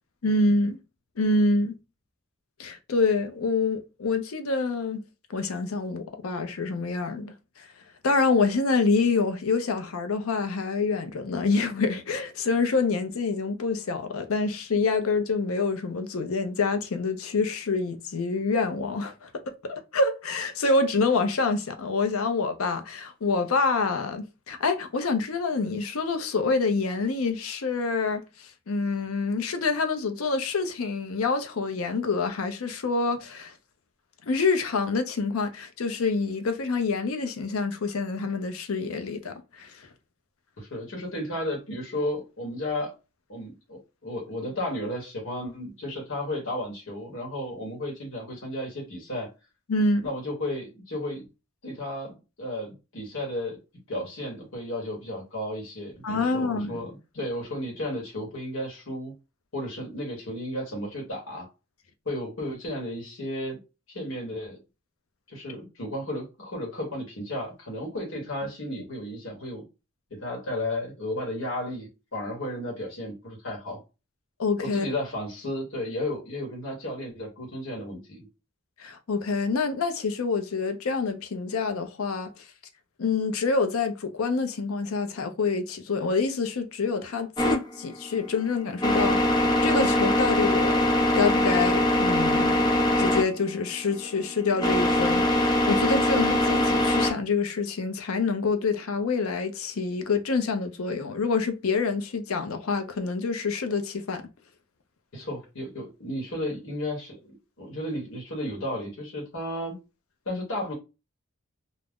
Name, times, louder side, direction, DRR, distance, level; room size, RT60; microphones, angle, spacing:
voice 1, 0.2-0.8 1.2-1.7 2.6-5.0 5.3-7.7 8.0-19.3 19.6-33.5 34.3-39.7 49.7-50.1 56.0-56.8 74.4-74.9 78.8-82.4 83.0-90.9 91.1-104.2, left 4 dB, 80° left, 0.5 m, -27 dB
voice 2, 40.6-42.9 43.3-49.3 50.0-51.2 51.6-53.6 53.9-59.1 59.5-61.5 62.0-63.6 63.9-64.6 65.3-69.6 70.1-73.8 74.6-78.3 105.1-109.8 110.3-110.7, left 1 dB, 60° left, 1.0 m, -33 dB
sound 1, 87.4-97.1, left 1 dB, 20° left, 0.5 m, -23 dB
2.4 x 2.0 x 3.5 m
head